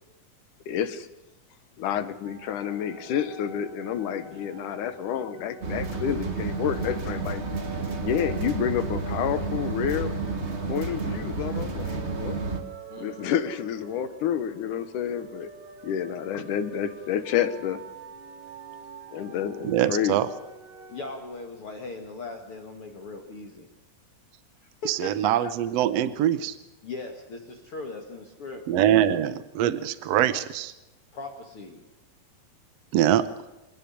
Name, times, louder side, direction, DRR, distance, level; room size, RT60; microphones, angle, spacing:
voice 1, 0.7-1.1 1.8-7.4 8.0-10.1 10.7-12.4 13.0-15.5 15.8-17.8 19.1-20.3, left 9 dB, 70° left, 12 dB, 2.4 m, -29 dB
sound 1, 2.2-21.2, right 4 dB, 60° right, 4.8 m, -45 dB
sound 2, 5.6-12.6, right 4 dB, 30° right, 1.3 m, -31 dB
voice 2, 12.9-13.2 16.4-16.5 20.9-23.7 24.6-25.5 26.8-28.7 31.1-31.8, left 3 dB, 45° left, 4 dB, 2.3 m, -39 dB
voice 3, 19.6-20.3 24.8-26.6 28.7-30.7 32.9-33.2, right 11 dB, 75° right, 13 dB, 1.5 m, -23 dB
26.5 x 9.9 x 10.0 m, 0.99 s
omnidirectional pair, 4.0 m